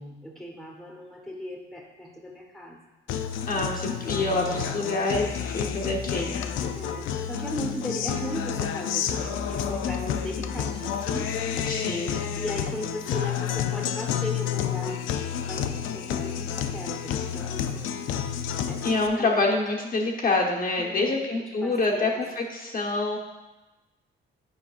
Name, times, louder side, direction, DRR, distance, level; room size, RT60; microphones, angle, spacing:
voice 1, 0.0-2.8 6.7-11.3 12.4-15.1 15.5-15.7 15.9-18.0 18.7-19.3 20.8-21.3 21.6-22.2, left 1 dB, ahead, 0 dB, 1.2 m, -37 dB
Guitar, 3.1-19.1, left 8 dB, 80° left, 0.5 m, -30 dB
voice 2, 3.5-6.4 11.7-12.2 18.8-23.2, left 2 dB, 45° left, -1 dB, 1.1 m, -26 dB
8.1 x 5.7 x 2.5 m, 1.1 s
cardioid pair, 90°, 20 cm